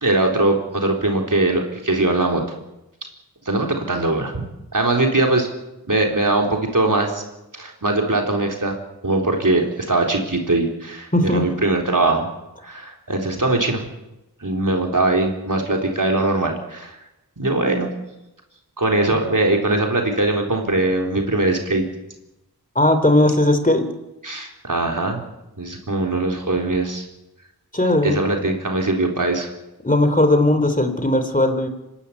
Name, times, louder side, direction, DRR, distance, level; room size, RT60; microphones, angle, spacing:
voice 1, 0.0-2.4 3.5-4.3 4.7-5.5 5.9-7.2 7.5-8.7 9.0-12.3 12.6-13.8 14.4-17.0 17.4-17.9 18.8-21.8 24.2-25.2 25.6-27.1 28.0-29.5, right 2 dB, 55° right, 2 dB, 3.9 m, -21 dB
voice 2, 11.1-11.4 22.7-23.9 27.7-28.2 29.8-31.7, left 1 dB, 20° left, 8 dB, 3.1 m, -17 dB
25.5 x 13.0 x 9.5 m, 0.95 s
wide cardioid pair, 45°, 38 cm